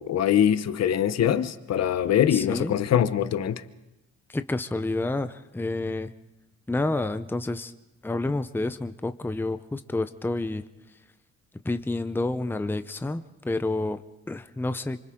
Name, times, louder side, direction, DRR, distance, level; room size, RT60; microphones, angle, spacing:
voice 1, 0.0-3.6, left 9 dB, 60° left, 1.0 m, -23 dB
voice 2, 2.3-2.7 4.3-6.1 6.7-7.7 8.0-10.6 11.6-14.0 14.3-15.0, left 2 dB, 5° left, 0.7 m, -29 dB
27.0 x 25.5 x 3.8 m
cardioid pair, 90°, 30 cm